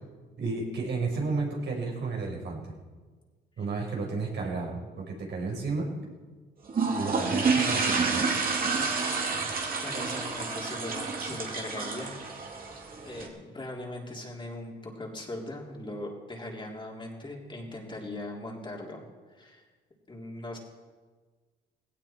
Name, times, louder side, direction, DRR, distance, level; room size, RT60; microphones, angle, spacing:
voice 1, 0.4-2.7 3.6-5.9 6.9-8.2, right 3 dB, 65° right, -1 dB, 5.1 m, -32 dB
sound 1, 6.7-13.3, right 4 dB, 45° right, 2.8 m, -29 dB
voice 2, 9.8-12.2 12.6-12.8 13.0-19.0 19.3-19.6 20.1-20.6, left 1 dB, 25° left, -2 dB, 3.6 m, -40 dB
17.5 x 17.0 x 4.5 m, 1.4 s
cardioid pair, 90°, 20 cm